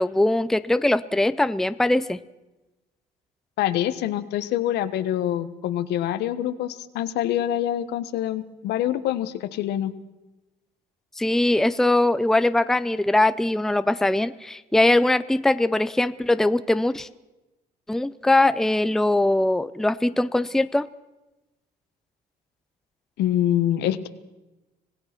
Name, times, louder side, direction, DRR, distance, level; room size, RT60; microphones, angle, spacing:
voice 1, 0.0-2.2 11.2-17.1 17.9-20.9, left 2 dB, 5° left, 14 dB, 0.6 m, -21 dB
voice 2, 3.6-9.9 23.2-24.1, left 12 dB, 80° left, 12 dB, 1.3 m, -25 dB
26.0 x 17.5 x 6.1 m, 1.0 s
cardioid pair, 110°, 17 cm